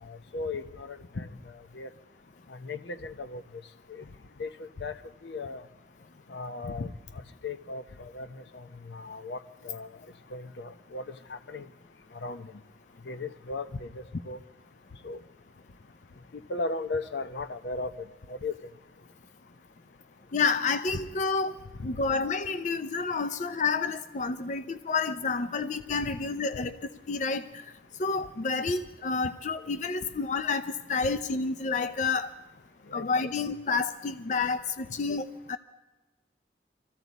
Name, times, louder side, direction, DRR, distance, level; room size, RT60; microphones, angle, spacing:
voice 1, 0.0-1.9 2.5-3.4 3.9-4.0 4.4-5.7 6.3-6.9 7.4-10.0 10.3-11.7 12.1-12.5 13.0-14.4 15.0-15.2 16.3-18.6 21.8-21.9 32.9-33.3, left 3 dB, 80° left, 0.7 m, -37 dB
voice 2, 20.3-21.6 21.8-27.6 28.0-32.3 32.9-35.6, left 4 dB, 45° left, 0.5 m, -29 dB
24.5 x 14.5 x 4.0 m
head